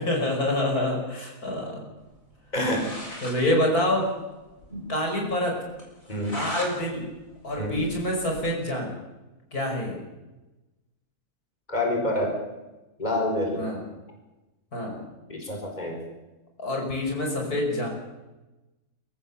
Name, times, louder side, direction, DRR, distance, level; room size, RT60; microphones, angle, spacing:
voice 1, 0.0-1.9 3.2-4.1 4.9-5.6 6.1-7.1 7.4-9.0 9.5-10.0 13.5-13.8 14.7-15.0 16.6-17.9, left 1 dB, 75° left, 1 dB, 6.0 m, -27 dB
sound 1, 2.3-2.4 2.6-3.4 3.7-3.8 4.1-4.2 4.6-4.7 5.1-5.2 5.8-6.7 7.1-8.5, left 1 dB, 60° left, 5.4 m, -38 dB
voice 2, 2.5-2.9 4.7-4.8 6.1-6.4 7.6-7.8 11.7-12.4 13.0-13.6 15.3-16.0, left 1 dB, 25° left, 1 dB, 4.7 m, -27 dB
26.5 x 15.5 x 7.1 m, 1.1 s
omnidirectional pair, 1.6 m